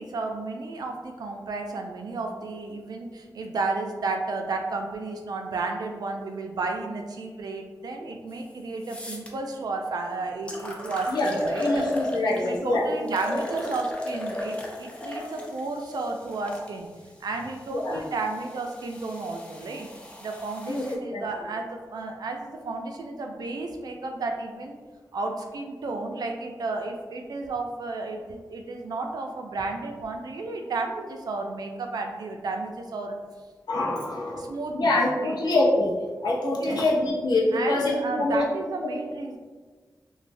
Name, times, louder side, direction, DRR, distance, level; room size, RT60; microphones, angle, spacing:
voice 1, 0.0-11.9 12.2-16.9 17.2-19.9 20.2-24.8 25.1-33.2 34.4-34.9 35.2-35.4 36.5-36.8 37.5-39.4, right 3 dB, 70° right, 3 dB, 0.3 m, -32 dB
sound 1, 8.3-8.4 8.8-9.3 10.0-10.1 10.5-12.6 13.1-16.7 17.5-21.0, left 1 dB, 15° left, 0.3 m, -35 dB
voice 2, 11.1-12.9 15.0-15.3 17.7-18.0 20.7-20.8 21.1-21.4 33.7-35.9 36.2-38.4 38.8-39.0, left 2 dB, 85° left, -4 dB, 0.6 m, -25 dB
3.2 x 2.1 x 2.5 m, 1.4 s
wide cardioid pair, 170°, 7 cm